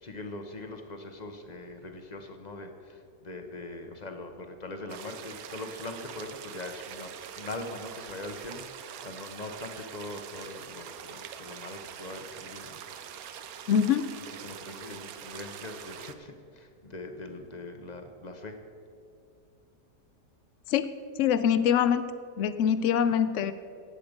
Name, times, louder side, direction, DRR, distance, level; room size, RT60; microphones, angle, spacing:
voice 1, 0.0-7.1 7.4-12.8 14.2-18.6, left 2 dB, 35° left, 5 dB, 0.8 m, -41 dB
sound 1, 4.9-16.1, right 9 dB, 65° right, 1.0 m, -44 dB
voice 2, 13.7-14.0 20.7-20.9 21.2-22.0 22.4-23.5, left 8 dB, 70° left, 13 dB, 0.7 m, -24 dB
17.5 x 7.7 x 5.1 m, 2.4 s
omnidirectional pair, 1.8 m